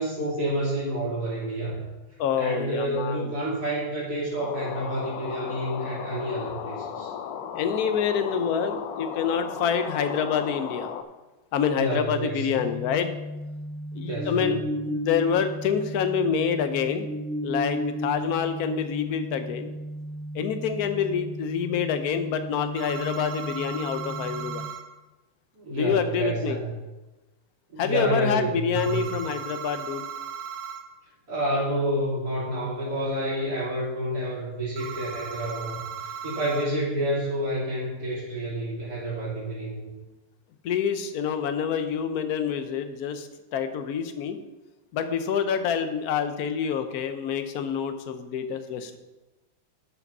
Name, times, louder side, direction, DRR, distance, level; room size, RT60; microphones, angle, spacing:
voice 1, 0.0-1.8 2.3-7.1 11.7-12.6 14.0-14.6 25.5-26.7 27.7-29.2 31.3-39.9, right 1 dB, 60° right, -8 dB, 3.8 m, -29 dB
voice 2, 2.2-3.3 7.5-10.9 11.5-13.1 13.9-17.1 17.4-19.7 20.3-24.6 25.7-26.6 27.8-30.0 40.6-44.4 44.9-49.0, left 7 dB, 65° left, 9 dB, 1.2 m, -27 dB
sound 1, 4.4-11.0, left 8 dB, 85° left, 1.3 m, -35 dB
sound 2, 12.5-24.7, equal, 40° left, 0.8 m, -35 dB
Electronic telephone ring close, 22.8-24.8 28.8-30.8 34.8-36.7, right 7 dB, 75° right, 1.4 m, -37 dB
12.0 x 5.0 x 5.4 m, 1.1 s
omnidirectional pair, 1.9 m